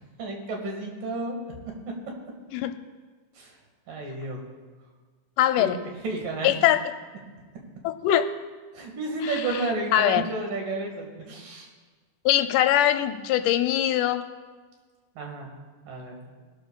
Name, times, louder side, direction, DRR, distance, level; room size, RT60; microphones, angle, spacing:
voice 1, 0.2-1.6 3.4-3.5 3.9-4.4 5.6-5.7 6.0-6.5 8.7-11.7 15.2-15.5 15.9-16.3, right 2 dB, 85° right, 1 dB, 3.5 m, -32 dB
voice 2, 5.4-5.8 6.4-6.8 7.8-8.3 9.2-9.6 9.9-10.3 12.3-14.2, left 12 dB, 85° left, 9 dB, 2.1 m, -22 dB
20.0 x 12.5 x 2.3 m, 1.4 s
omnidirectional pair, 3.7 m